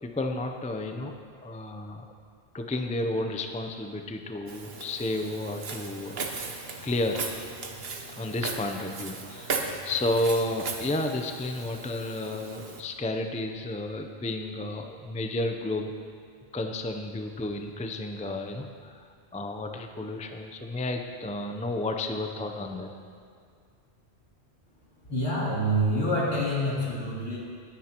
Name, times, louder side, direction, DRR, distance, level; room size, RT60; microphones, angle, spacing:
voice 1, 0.0-1.1 1.4-2.1 2.5-6.5 6.8-7.2 8.1-15.9 16.5-22.9, left 2 dB, 10° left, 4 dB, 0.4 m, -32 dB
Walk footsteps, 4.5-12.8, right 4 dB, 60° right, 1.2 m, -37 dB
voice 2, 25.1-27.4, equal, 75° left, -6 dB, 3.1 m, -26 dB
19.5 x 10.0 x 3.0 m, 2.1 s
omnidirectional pair, 1.2 m